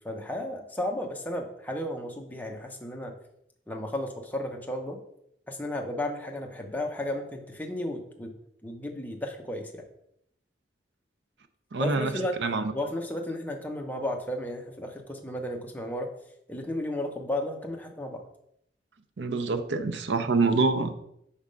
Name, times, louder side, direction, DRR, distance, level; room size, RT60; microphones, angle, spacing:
voice 1, 0.0-3.1 3.7-5.0 5.5-8.4 8.6-9.8 11.8-12.3 12.7-16.1 16.5-18.2, left 1 dB, 10° left, 2 dB, 0.7 m, -33 dB
voice 2, 11.7-12.6 19.2-20.9, right 3 dB, 85° right, 9 dB, 0.6 m, -26 dB
5.4 x 3.5 x 5.2 m, 0.74 s
head